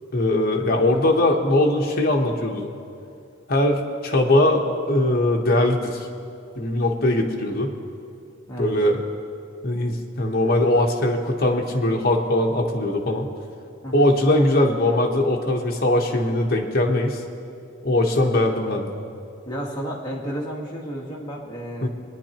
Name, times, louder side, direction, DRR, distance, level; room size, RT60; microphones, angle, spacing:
voice 1, 0.1-2.7 3.5-6.1 6.6-7.7 8.6-9.0 9.6-13.3 13.9-17.2 17.8-18.9 21.8-21.9, left 1 dB, 45° left, 1 dB, 1.0 m, -21 dB
voice 2, 19.4-21.9, equal, 20° left, -4 dB, 1.4 m, -32 dB
22.5 x 10.0 x 3.0 m, 2.5 s
head